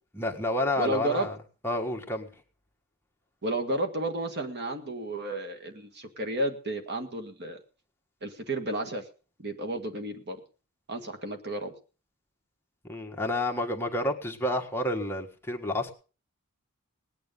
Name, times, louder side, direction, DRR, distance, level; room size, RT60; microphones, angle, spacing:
voice 1, 0.1-1.4 1.6-2.3 12.8-15.9, left 1 dB, 10° left, 2 dB, 1.6 m, -30 dB
voice 2, 0.8-1.3 3.4-7.6 8.2-9.0 9.4-10.4 10.9-11.7, right 2 dB, 50° right, 5 dB, 1.9 m, -32 dB
19.0 x 9.4 x 5.4 m, 0.37 s
head